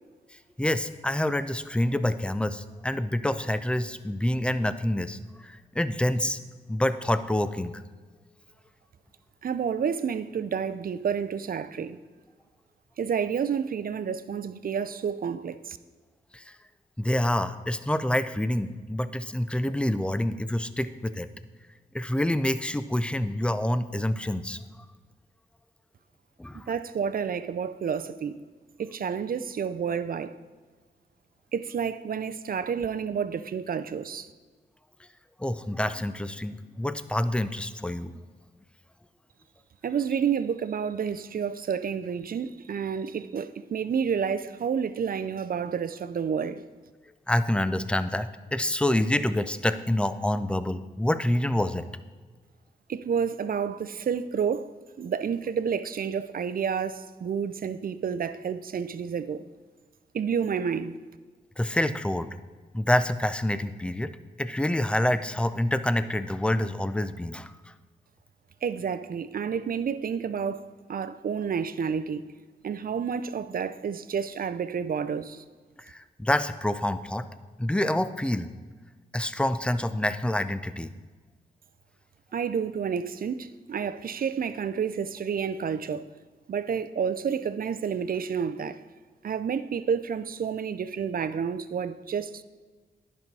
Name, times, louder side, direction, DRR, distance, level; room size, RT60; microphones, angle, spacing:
voice 1, 0.3-6.4 6.7-7.8 16.3-16.6 17.0-21.3 21.9-24.6 26.4-26.7 35.4-38.1 47.3-51.9 61.6-62.3 62.7-64.1 64.4-67.7 75.8-77.2 77.6-78.5 79.1-80.9, left 1 dB, 5° left, 0.4 m, -27 dB
voice 2, 9.4-12.0 13.0-15.8 26.5-28.3 28.8-30.4 31.5-34.3 39.8-46.6 52.9-59.4 60.1-61.0 68.6-72.3 72.6-75.4 82.3-86.1 86.5-88.8 89.2-92.4, right 7 dB, 55° right, 0.5 m, -30 dB
10.5 x 5.5 x 4.7 m
cardioid pair, 70°, 18 cm